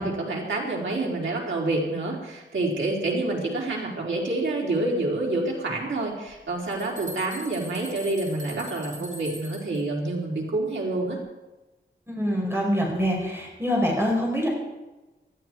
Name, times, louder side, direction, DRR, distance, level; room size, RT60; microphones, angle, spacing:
voice 1, 0.0-11.2, right 2 dB, 85° right, -2 dB, 4.2 m, -28 dB
sound 1, 6.3-6.4 6.7-9.8, right 1 dB, 40° right, 4.7 m, -42 dB
voice 2, 12.1-14.5, equal, 10° right, -1 dB, 5.1 m, -25 dB
19.0 x 13.5 x 4.7 m, 1.1 s
wide cardioid pair, 135°, 19 cm